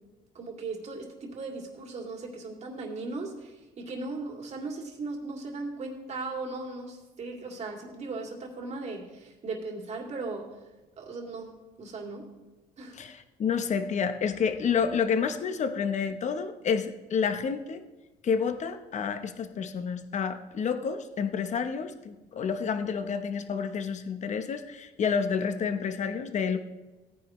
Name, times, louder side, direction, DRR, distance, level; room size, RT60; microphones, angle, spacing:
voice 1, 0.3-10.5 11.0-11.5 11.8-12.3 12.8-13.0, right 3 dB, 40° right, 0 dB, 2.7 m, -37 dB
voice 2, 13.0-17.8 18.2-26.6, left 6 dB, 45° left, 9 dB, 1.0 m, -29 dB
17.5 x 9.5 x 3.2 m, 1.1 s
cardioid pair, 110°, 17 cm